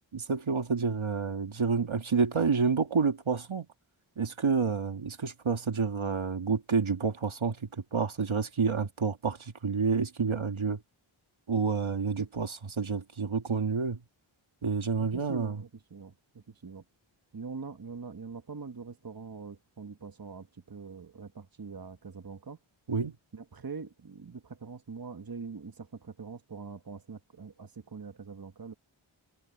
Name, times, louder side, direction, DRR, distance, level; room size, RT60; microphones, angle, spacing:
voice 1, 0.1-3.7 4.2-10.8 11.5-14.0 14.6-15.6 22.9-23.1, right 5 dB, 70° right, 1.7 m, -29 dB
voice 2, 15.0-16.8 17.3-22.6 23.3-28.7, right 5 dB, 45° right, 1.4 m, -43 dB
wide cardioid pair, 55°, 49 cm